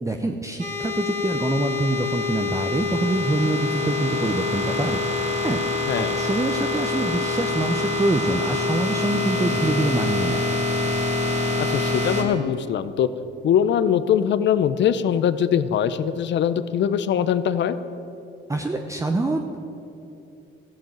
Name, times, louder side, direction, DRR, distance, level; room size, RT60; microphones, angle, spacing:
voice 1, 0.0-5.0 5.4-10.4 18.5-19.6, right 2 dB, 15° right, 4 dB, 0.8 m, -25 dB
sound 1, 0.6-12.2, left 3 dB, 35° right, 2.5 m, -25 dB
voice 2, 11.6-13.1 13.4-17.7, left 9 dB, 65° left, 13 dB, 0.7 m, -22 dB
13.5 x 7.5 x 9.0 m, 2.7 s
cardioid pair, 90°, 20 cm